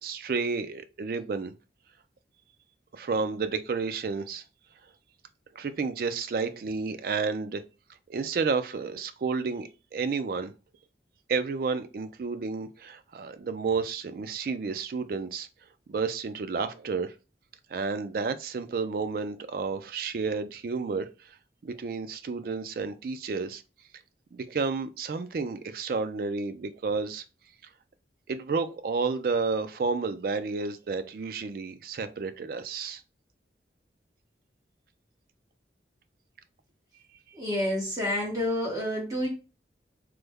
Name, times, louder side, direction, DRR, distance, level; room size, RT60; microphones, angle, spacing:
voice 1, 0.0-1.5 2.9-4.4 5.5-7.6 8.1-10.5 11.3-15.5 15.9-17.1 17.7-21.4 21.6-23.6 24.3-27.2 28.3-33.0, right 4 dB, 55° right, 0.3 m, -31 dB
voice 2, 37.3-39.3, left 1 dB, 20° right, 0.9 m, -29 dB
3.2 x 2.1 x 3.4 m
head